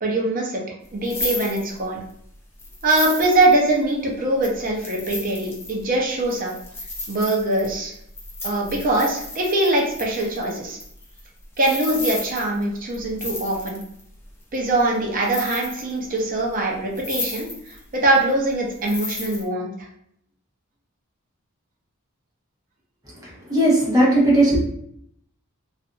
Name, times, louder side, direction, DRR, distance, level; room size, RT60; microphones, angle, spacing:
voice 1, 0.0-0.6 0.9-2.0 2.8-6.5 7.1-7.9 8.4-10.8 11.6-13.8 14.5-19.7, right 2 dB, 40° right, -1 dB, 0.6 m, -22 dB
sound 1, 0.9-2.1 2.6-3.9 4.4-14.0 14.5-15.0 15.2-16.2 16.5-16.6 17.0-17.8 18.1-19.5, left 2 dB, 10° left, 0.4 m, -33 dB
voice 2, 23.1-24.6, right 1 dB, 20° right, -6 dB, 1.0 m, -18 dB
2.6 x 2.5 x 2.3 m, 0.69 s
head